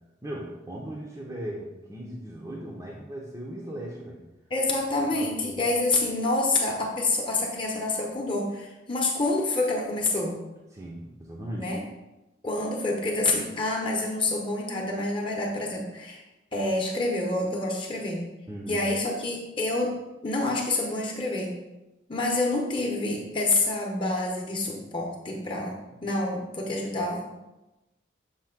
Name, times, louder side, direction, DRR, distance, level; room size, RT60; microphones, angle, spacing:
voice 1, 0.2-4.2 5.1-5.7 10.7-11.7 18.5-18.8 25.9-26.0, right 1 dB, 15° right, -4 dB, 0.7 m, -38 dB
voice 2, 4.5-10.3 11.5-11.8 12.4-16.2 16.5-18.3 18.7-19.9 20.2-21.5 22.1-25.8 26.0-27.3, left 2 dB, 25° left, -1 dB, 0.9 m, -27 dB
7.1 x 2.9 x 5.9 m, 1.0 s
head